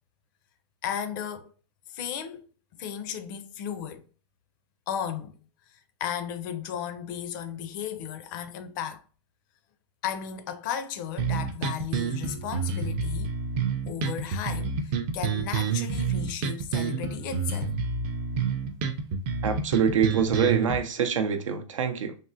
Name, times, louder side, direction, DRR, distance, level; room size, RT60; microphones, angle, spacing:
voice 1, 0.8-1.5 1.9-2.5 2.8-4.1 4.9-5.4 5.7-9.0 10.0-13.4 13.9-17.7, left 9 dB, 40° left, 0.4 m, -35 dB
sound 1, 11.2-20.8, right 5 dB, 30° right, 0.4 m, -28 dB
voice 2, 19.4-22.2, right 7 dB, 90° right, 0.6 m, -25 dB
3.6 x 2.0 x 2.6 m
hypercardioid pair, 140°, 16 cm